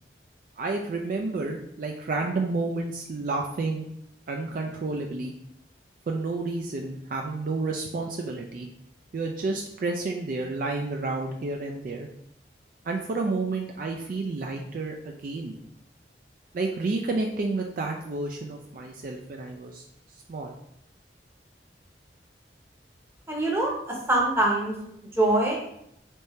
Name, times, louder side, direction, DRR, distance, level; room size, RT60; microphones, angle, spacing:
voice 1, 0.6-3.8 4.3-5.3 6.1-8.7 9.1-12.1 12.8-15.6 16.5-19.8 20.3-20.5, right 3 dB, 50° right, 1 dB, 0.3 m, -30 dB
voice 2, 23.3-24.8 25.1-25.6, right 2 dB, 15° right, -2 dB, 0.8 m, -24 dB
3.5 x 2.7 x 4.2 m, 0.76 s
head